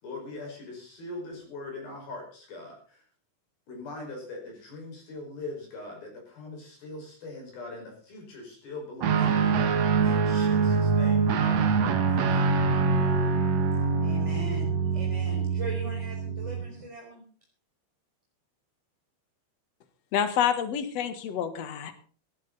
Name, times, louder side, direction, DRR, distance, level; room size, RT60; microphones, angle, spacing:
voice 1, 0.0-3.0 3.7-11.7 12.1-12.5, left 2 dB, 50° left, 1 dB, 7.0 m, -41 dB
Guitar, 9.0-16.7, right 5 dB, 65° right, 1.7 m, -24 dB
voice 2, 14.0-17.3, right 1 dB, 10° right, -3 dB, 3.3 m, -39 dB
voice 3, 20.1-21.9, left 9 dB, 70° left, 10 dB, 1.5 m, -28 dB
17.5 x 15.0 x 4.0 m, 0.42 s
omnidirectional pair, 5.4 m